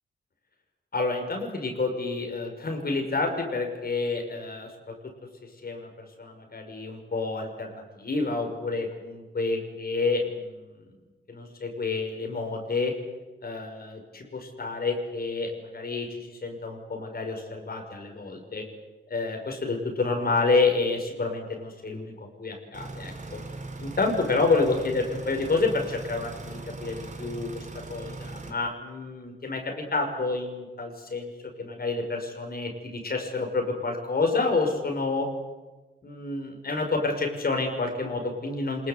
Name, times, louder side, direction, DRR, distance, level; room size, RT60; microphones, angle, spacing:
voice 1, 0.9-4.7 5.6-10.8 11.3-12.9 13.4-18.6 19.1-23.4 23.8-31.3 31.6-35.3 36.0-38.9, left 3 dB, 50° left, 3 dB, 5.8 m, -29 dB
sound 1, 22.7-28.5, right 3 dB, 35° right, 3.9 m, -39 dB
26.5 x 21.0 x 8.3 m, 1.2 s
cardioid pair, 90°, 20 cm